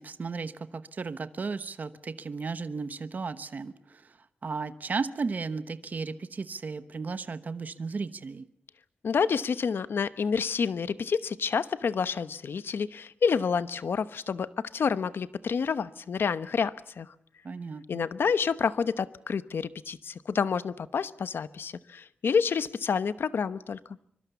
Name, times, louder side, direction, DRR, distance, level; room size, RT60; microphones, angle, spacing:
voice 1, 0.0-4.2 4.4-8.5 17.4-18.0, right 4 dB, 50° right, 12 dB, 1.0 m, -35 dB
voice 2, 9.0-17.1 17.9-23.8, left 6 dB, 90° left, 14 dB, 0.9 m, -28 dB
24.5 x 24.0 x 7.0 m, 0.65 s
wide cardioid pair, 155°, 4 cm